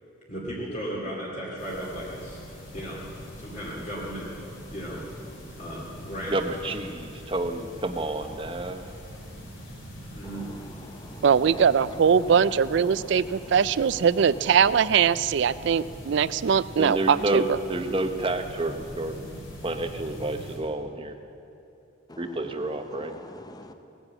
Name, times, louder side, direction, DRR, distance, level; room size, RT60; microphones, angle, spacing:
voice 1, 0.3-2.4 2.7-3.0 3.4-4.3 4.7-5.0 5.6-6.7 10.1-10.5, equal, 35° left, -6 dB, 2.4 m, -35 dB
sound 1, 1.6-20.6, equal, 80° left, 4.7 m, -43 dB
voice 2, 6.3-8.8 16.8-19.1 19.6-21.1 22.2-23.1, right 2 dB, 25° right, 7 dB, 0.7 m, -29 dB
voice 3, 10.2-11.6 12.9-13.6 22.1-23.7, left 1 dB, 20° left, 7 dB, 0.7 m, -46 dB
voice 4, 11.2-17.6, right 7 dB, 60° right, 17 dB, 0.3 m, -21 dB
18.0 x 9.8 x 7.5 m, 2.8 s
head